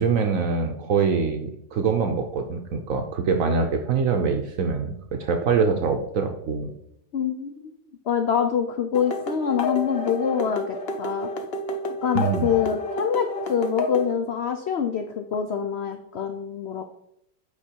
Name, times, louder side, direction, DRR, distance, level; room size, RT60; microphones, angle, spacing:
voice 1, 0.0-6.7 12.1-12.6, right 5 dB, 60° right, 5 dB, 0.9 m, -24 dB
voice 2, 7.1-7.7 8.1-11.3 12.0-16.8, left 7 dB, 75° left, 6 dB, 0.5 m, -25 dB
sound 1, 8.9-14.1, left 2 dB, 45° left, 0.8 m, -30 dB
8.6 x 5.3 x 4.5 m, 0.76 s
omnidirectional pair, 1.9 m